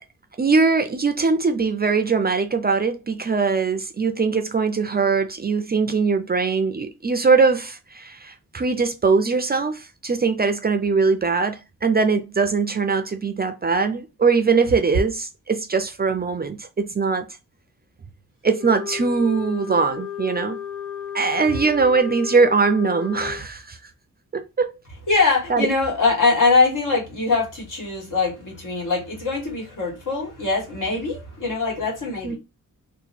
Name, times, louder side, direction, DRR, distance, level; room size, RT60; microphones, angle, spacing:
voice 1, 0.4-17.3 18.4-20.6 21.1-23.8 24.3-24.7 25.5-25.7 32.2-32.4, right 4 dB, 30° right, 0.4 m, -21 dB
Wind instrument woodwind instrument, 18.5-23.4, left 10 dB, 40° left, 1.3 m, -33 dB
voice 2, 25.1-32.4, left 4 dB, 75° left, 1.6 m, -22 dB
2.9 x 2.2 x 4.1 m
wide cardioid pair, 150°, 32 cm